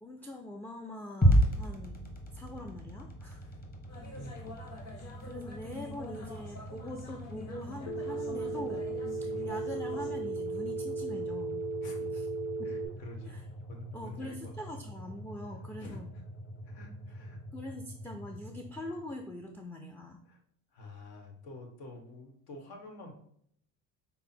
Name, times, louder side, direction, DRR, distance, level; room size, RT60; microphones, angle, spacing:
voice 1, 0.0-2.0 2.3-3.5 5.2-8.9 9.2-11.6 12.1-12.3 12.6-12.8 13.2-13.4 13.9-16.1 17.5-20.2, left 1 dB, 5° left, 3 dB, 0.3 m, -43 dB
sound 1, 1.2-19.4, equal, 25° left, 1.4 m, -36 dB
voice 2, 3.3-3.6 4.1-4.7 9.3-9.6 11.8-12.2 12.6-13.4 13.7-14.5 15.8-16.0 16.6-17.4 20.2-20.4 20.7-23.1, left 1 dB, 75° left, 3 dB, 1.3 m, -48 dB
sound 2, 3.9-10.2, left 3 dB, 45° left, 1.2 m, -47 dB
Telephone, 7.9-12.9, right 3 dB, 90° left, 0.7 m, -35 dB
5.3 x 2.0 x 4.3 m, 0.66 s
supercardioid pair, 80°, 38 cm